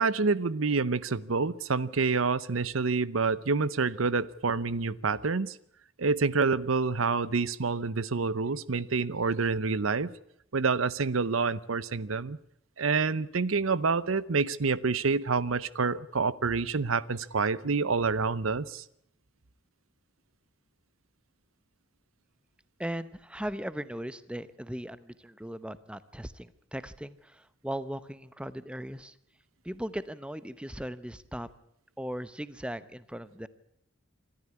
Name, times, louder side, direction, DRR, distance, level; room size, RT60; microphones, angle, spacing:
voice 1, 0.0-5.6 6.0-10.1 10.5-12.4 12.8-18.8, right 4 dB, 90° right, 19 dB, 0.8 m, -27 dB
voice 2, 22.8-29.1 29.6-31.5 32.0-33.5, equal, 5° right, 15 dB, 0.9 m, -38 dB
25.5 x 13.0 x 9.8 m, 0.74 s
head